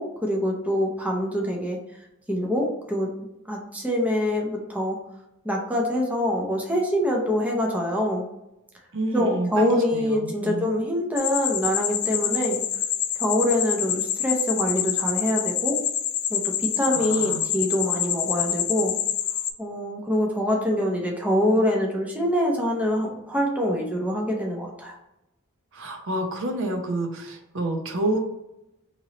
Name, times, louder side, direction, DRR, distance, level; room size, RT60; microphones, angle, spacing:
voice 1, 0.0-1.8 2.3-3.1 3.5-5.0 5.4-8.2 9.1-12.6 13.2-15.8 16.3-18.9 19.6-24.9, left 1 dB, 5° right, -1 dB, 0.6 m, -25 dB
voice 2, 8.9-10.7 16.9-17.5 25.7-28.2, right 2 dB, 65° right, 3 dB, 0.6 m, -29 dB
sound 1, 11.2-19.5, left 10 dB, 50° left, 0.3 m, -27 dB
3.0 x 2.9 x 3.8 m, 0.91 s
head